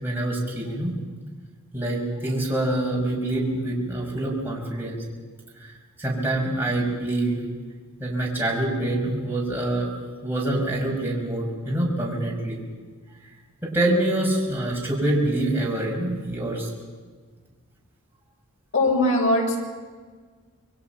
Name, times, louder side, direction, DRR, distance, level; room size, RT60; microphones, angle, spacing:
voice 1, 0.0-1.0 1.7-5.0 5.6-5.7 6.0-7.4 8.0-9.9 10.2-12.6 13.6-16.7, right 1 dB, 10° right, -4 dB, 6.2 m, -25 dB
voice 2, 18.7-19.6, left 1 dB, 65° left, -1 dB, 6.7 m, -20 dB
28.0 x 22.0 x 6.0 m, 1.5 s
head